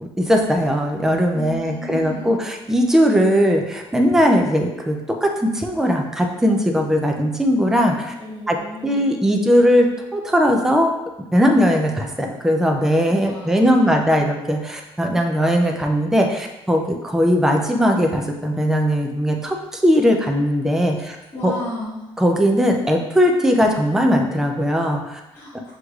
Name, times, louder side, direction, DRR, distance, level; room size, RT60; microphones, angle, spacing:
voice 1, 0.0-8.1 8.5-8.6 8.8-10.9 11.3-21.2 21.4-21.5 22.2-25.2, equal, 5° right, 2 dB, 0.3 m, -19 dB
voice 2, 1.3-2.3 8.2-9.1 13.1-14.1 20.9-22.1 25.3-25.7, left 1 dB, 15° left, -12 dB, 1.3 m, -34 dB
6.4 x 3.1 x 2.4 m, 0.99 s
cardioid pair, 170°, 12 cm